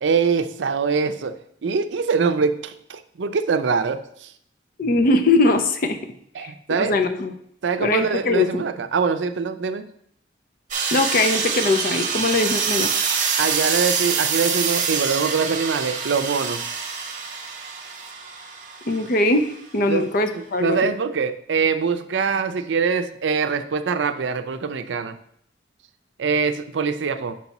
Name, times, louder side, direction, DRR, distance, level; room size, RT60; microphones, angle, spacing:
voice 1, 0.0-4.3 6.3-7.0 7.6-9.9 13.4-16.6 19.9-20.1 20.3-25.2 26.2-27.3, right 5 dB, 90° right, 10 dB, 0.5 m, -23 dB
voice 2, 4.8-6.0 6.4-6.5 6.8-7.3 7.8-8.6 10.9-12.9 18.9-20.9, left 2 dB, 50° left, 8 dB, 0.6 m, -21 dB
sound 1, 10.7-19.3, right 6 dB, 45° right, 0.8 m, -25 dB
5.9 x 4.6 x 4.1 m, 0.68 s
head